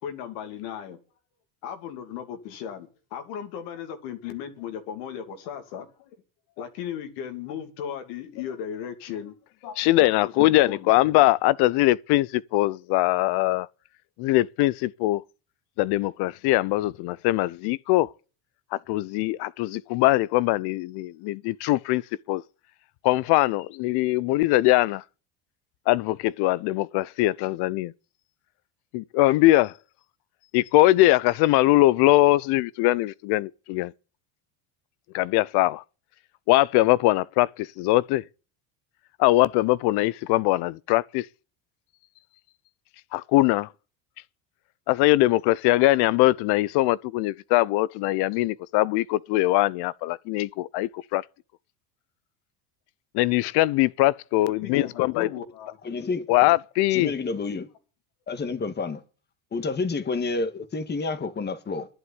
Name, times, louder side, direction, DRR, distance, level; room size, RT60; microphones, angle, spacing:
voice 1, 0.0-1.0 1.6-6.1 6.6-9.4 9.6-9.9 10.2-10.9 54.4-55.8 56.3-56.4, left 9 dB, 75° left, 2.7 m, -36 dB
voice 2, 9.8-13.7 14.2-15.2 15.8-18.1 18.9-22.0 22.3-22.4 23.0-25.0 25.9-27.9 28.9-29.7 30.5-33.9 35.1-35.8 36.5-37.5 37.8-38.2 39.2-41.2 43.1-43.7 44.9-51.2 53.1-55.3 56.3-57.1, left 17 dB, 60° left, 0.7 m, -21 dB
voice 3, 55.8-56.2 56.9-57.7 58.3-59.0 59.5-61.9, left 4 dB, 25° left, 1.7 m, -29 dB
11.0 x 8.2 x 9.6 m
supercardioid pair, 115°, 44 cm